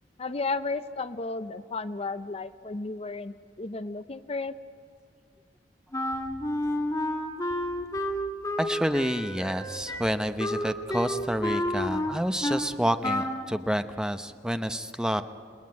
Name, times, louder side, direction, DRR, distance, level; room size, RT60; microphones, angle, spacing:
voice 1, 0.2-4.5, left 3 dB, 35° left, 12 dB, 0.6 m, -33 dB
Wind instrument woodwind instrument, 5.9-12.7 13.0-13.5, left 1 dB, 20° left, 1.7 m, -30 dB
sound 1, 6.1-7.1 7.5-9.0 9.8-10.8 11.2-12.6 13.1-13.4, equal, 25° right, 5.8 m, -54 dB
voice 2, 8.6-15.2, equal, 5° right, 9 dB, 0.7 m, -29 dB
28.5 x 20.0 x 9.5 m, 2.3 s
head